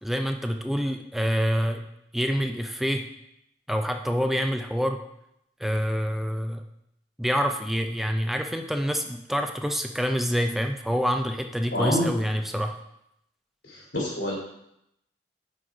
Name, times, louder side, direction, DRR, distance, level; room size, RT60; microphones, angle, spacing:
voice 1, 0.0-1.8 2.1-3.1 3.7-5.0 5.6-6.6 7.2-12.8, equal, ahead, 5 dB, 0.3 m, -26 dB
voice 2, 11.7-12.1 13.6-14.3, left 1 dB, 90° left, -4 dB, 2.9 m, -27 dB
6.2 x 4.7 x 4.8 m, 0.80 s
head